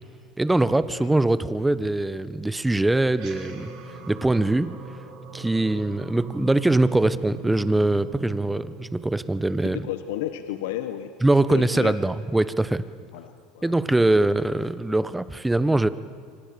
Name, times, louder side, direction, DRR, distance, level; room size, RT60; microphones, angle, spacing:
voice 1, 0.4-3.7 4.1-4.7 5.3-9.8 11.2-12.8 13.6-15.9, right 2 dB, 10° right, 15 dB, 1.3 m, -22 dB
sound 1, 3.0-9.8, right 5 dB, 60° right, 5.9 m, -40 dB
voice 2, 9.6-11.1 11.5-12.0 13.1-13.7, left 12 dB, 75° left, 9 dB, 1.3 m, -33 dB
29.0 x 25.0 x 7.0 m, 2.2 s
hypercardioid pair, 90°, 0 cm